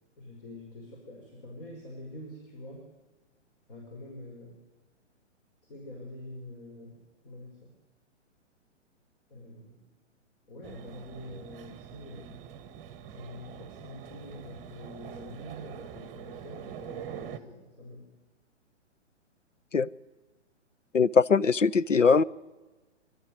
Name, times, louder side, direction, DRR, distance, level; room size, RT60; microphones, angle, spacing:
voice 1, 0.2-2.9 3.7-4.5 5.6-7.7 9.3-9.8 10.5-12.4 13.1-18.1, left 1 dB, 45° left, 0 dB, 5.5 m, -45 dB
sound 1, 10.6-17.4, right 9 dB, 20° right, 1.2 m, -44 dB
voice 2, 20.9-22.2, left 5 dB, 85° left, 16 dB, 0.7 m, -21 dB
26.5 x 12.0 x 9.6 m, 1.2 s
figure-of-eight pair, 120°, 37 cm